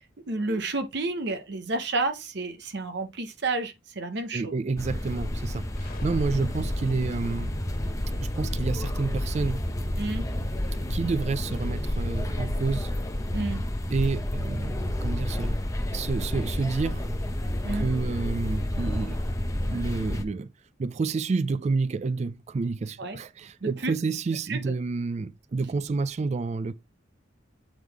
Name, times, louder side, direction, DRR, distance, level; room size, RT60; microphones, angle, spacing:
voice 1, 0.3-4.5 10.0-10.2 13.3-13.6 17.7-17.9 23.0-23.2 23.6-23.9 24.5-24.6, right 2 dB, 60° right, 0.8 m, -30 dB
voice 2, 4.3-7.6 8.2-9.6 10.9-12.9 13.9-15.6 15.9-17.0 17.7-19.2 19.5-20.5 20.8-26.7, right 4 dB, 35° right, 0.3 m, -29 dB
sound 1, 4.8-20.2, left 1 dB, 15° left, 0.8 m, -30 dB
sound 2, 5.8-17.6, equal, 50° left, 1.6 m, -40 dB
8.1 x 3.7 x 4.6 m
head